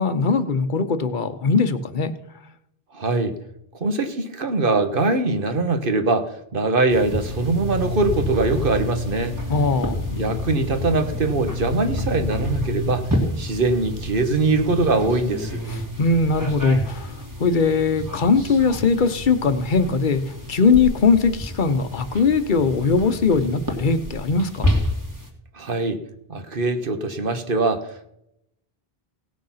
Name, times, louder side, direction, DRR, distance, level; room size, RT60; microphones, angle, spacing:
voice 1, 0.0-2.1 9.5-10.0 15.7-24.7, left 4 dB, 55° left, 11 dB, 1.0 m, -20 dB
voice 2, 2.9-3.4 3.8-9.4 10.1-13.1 13.4-15.6 25.5-26.0 26.3-28.1, right 3 dB, 60° right, 8 dB, 1.4 m, -22 dB
sound 1, 6.9-25.3, left 1 dB, 20° right, 2.2 m, -29 dB
17.5 x 6.6 x 5.7 m, 0.78 s
omnidirectional pair, 1.0 m